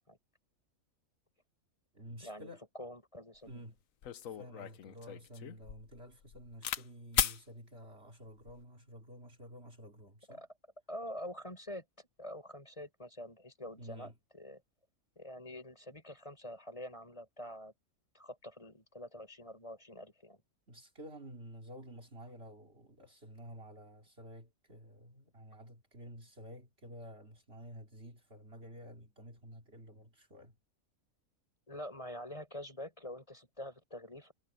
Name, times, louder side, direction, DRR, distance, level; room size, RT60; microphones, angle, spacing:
voice 1, 1.9-2.6 3.5-3.8 4.3-10.4 13.8-14.2 20.7-30.6, equal, 45° right, 3.3 m, -51 dB
voice 2, 2.7-3.5 10.3-10.5 10.9-11.8 12.2-14.6 15.2-17.7 18.1-20.4 31.7-34.3, left 1 dB, 20° left, 5.7 m, -46 dB
sound 1, 3.5-3.6 4.0-6.8 7.1-7.4 8.3-8.6, left 9 dB, 70° left, 1.2 m, -36 dB
omnidirectional pair, 1.5 m